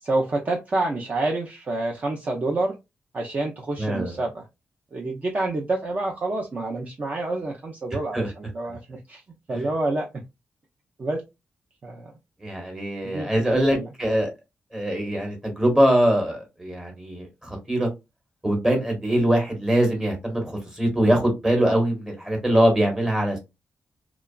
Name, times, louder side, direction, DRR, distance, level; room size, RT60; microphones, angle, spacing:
voice 1, 0.0-2.7 3.1-4.4 4.9-9.2 9.5-10.1 11.0-11.2 11.8-12.1 13.0-13.9, right 2 dB, 35° right, 0.5 m, -28 dB
voice 2, 3.8-4.1 8.1-8.3 12.4-14.3 14.7-17.9 18.4-23.4, right 1 dB, 10° right, 1.1 m, -22 dB
2.9 x 2.3 x 2.3 m
wide cardioid pair, 115°, 4 cm